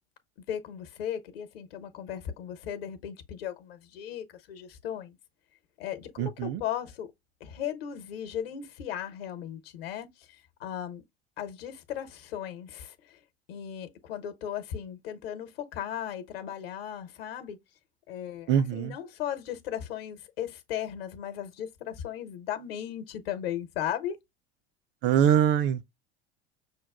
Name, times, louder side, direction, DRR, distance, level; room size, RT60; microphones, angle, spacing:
voice 1, 0.5-5.2 5.8-7.1 7.4-10.1 10.6-11.0 11.4-13.2 13.5-17.6 18.1-24.2, left 10 dB, 60° left, 0.9 m, -36 dB
voice 2, 6.2-6.6 18.5-19.0 25.0-25.9, right 9 dB, 35° right, 0.4 m, -23 dB
6.5 x 2.3 x 2.2 m
figure-of-eight pair, 70°, 33 cm